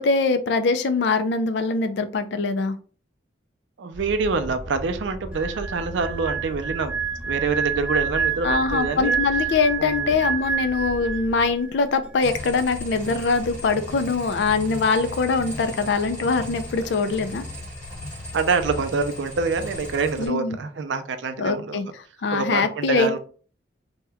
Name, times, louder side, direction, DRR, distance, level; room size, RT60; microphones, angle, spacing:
voice 1, 0.0-2.8 8.4-17.4 20.2-20.6 21.4-21.9 22.2-23.1, left 4 dB, 70° left, 0.4 m, -23 dB
voice 2, 3.8-6.9 7.2-9.2 9.8-10.2 16.8-17.0 18.3-21.8 22.3-23.2, right 4 dB, 80° right, 0.4 m, -26 dB
sound 1, 3.9-11.5, equal, 55° left, 1.0 m, -37 dB
sound 2, 5.3-11.7 12.0-12.2, right 6 dB, 5° right, 0.3 m, -28 dB
sound 3, 12.2-20.3, left 1 dB, 10° left, 1.3 m, -36 dB
2.8 x 2.2 x 3.3 m
head